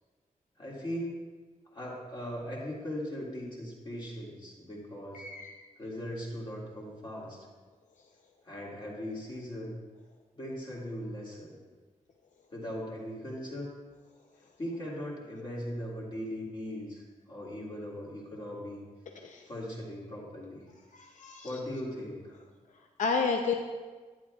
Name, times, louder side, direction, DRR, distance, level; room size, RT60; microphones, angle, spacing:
voice 1, 0.6-1.2 1.7-5.3 5.8-7.4 8.4-9.8 10.3-11.6 12.5-13.7 14.6-18.8 19.5-20.7 21.4-22.3, equal, 35° left, -4 dB, 2.1 m, -39 dB
voice 2, 5.1-5.6 19.2-19.5 20.9-21.5 23.0-23.5, left 5 dB, 65° left, 3 dB, 0.6 m, -31 dB
11.0 x 9.4 x 2.3 m, 1.4 s
wide cardioid pair, 160°, 14 cm